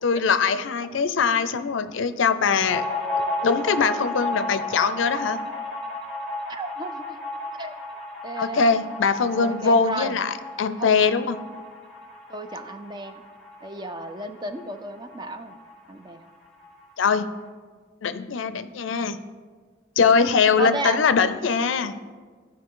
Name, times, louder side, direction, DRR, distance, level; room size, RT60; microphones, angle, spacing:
voice 1, 0.0-2.8 3.4-5.4 8.4-11.4 17.0-17.3 18.0-19.2 20.0-22.0, left 5 dB, 70° left, 12 dB, 0.5 m, -22 dB
sound 1, 2.7-15.8 16.1-16.2 16.5-17.2, left 2 dB, 5° left, 1.5 m, -33 dB
voice 2, 6.5-7.2 7.6-7.8 8.2-8.7 9.3-10.2 10.8-10.9 12.3-13.2 13.6-15.6 15.9-16.2 20.6-21.0, right 2 dB, 20° right, 7 dB, 0.4 m, -33 dB
14.0 x 5.1 x 3.7 m, 1.5 s
head